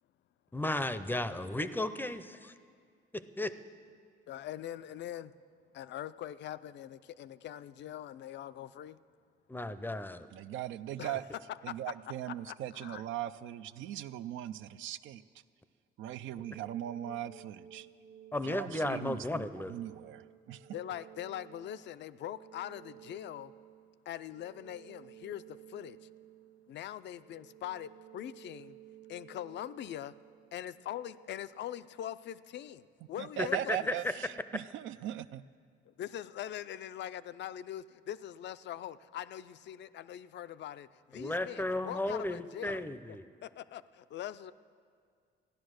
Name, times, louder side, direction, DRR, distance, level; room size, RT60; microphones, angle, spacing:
voice 1, 0.5-2.5 3.1-3.5 9.5-10.3 18.3-19.7 33.4-33.9 41.1-43.2, left 1 dB, 10° left, 12 dB, 0.5 m, -34 dB
voice 2, 4.3-5.3 5.7-9.0 11.0-11.2 11.7-11.8 12.5-13.0 20.7-23.5 24.1-26.0 26.7-28.8 29.1-30.1 30.5-34.0 35.9-44.5, left 11 dB, 65° left, 15 dB, 0.4 m, -42 dB
voice 3, 10.3-11.2 11.6-15.2 16.0-17.9 18.4-20.7 33.2-35.4, right 12 dB, 80° right, 13 dB, 0.4 m, -39 dB
sound 1, 16.4-31.4, right 11 dB, 45° right, 0.8 m, -55 dB
14.5 x 10.5 x 6.4 m, 2.1 s
cardioid pair, 90°, 20 cm